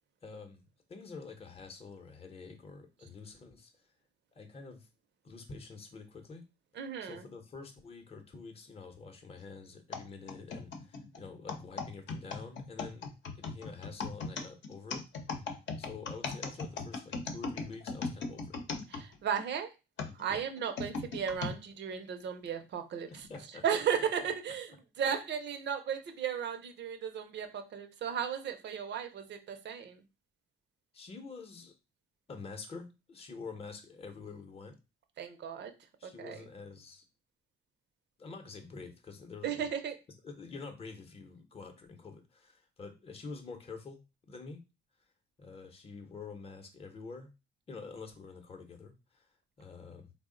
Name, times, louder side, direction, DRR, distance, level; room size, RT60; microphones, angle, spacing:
voice 1, 0.2-0.6 0.9-3.9 4.3-4.9 5.2-6.4 7.0-13.1 13.3-15.0 15.4-18.6 20.3-20.4 23.1-24.1 30.9-31.7 32.3-34.8 36.0-37.1 38.2-39.7 40.2-44.0 44.3-44.6 45.4-47.3 47.7-50.1, left 4 dB, 30° left, 0.7 m, -47 dB
voice 2, 6.8-7.2 18.9-19.7 20.1-23.3 23.6-24.7 25.0-30.0 35.2-35.7 36.0-36.5 39.4-40.0, right 8 dB, 60° right, 0.6 m, -35 dB
sound 1, 9.9-19.4 20.0-21.6 22.2-22.3 23.1-23.4, left 4 dB, 70° left, 0.7 m, -38 dB
3.5 x 2.0 x 3.7 m
cardioid pair, 90°, 20 cm